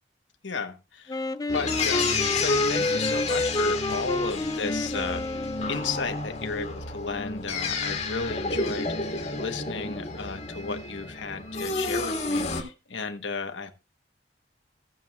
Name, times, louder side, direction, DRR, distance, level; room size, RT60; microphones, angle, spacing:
voice 1, 0.4-1.2 1.5-13.7, left 4 dB, 85° left, 7 dB, 1.2 m, -34 dB
Wind instrument woodwind instrument, 1.1-6.1, left 2 dB, 20° left, 0.4 m, -29 dB
sound 1, 1.5-12.6, left 3 dB, 40° left, 1.8 m, -30 dB
18.0 x 7.5 x 2.4 m, 0.28 s
head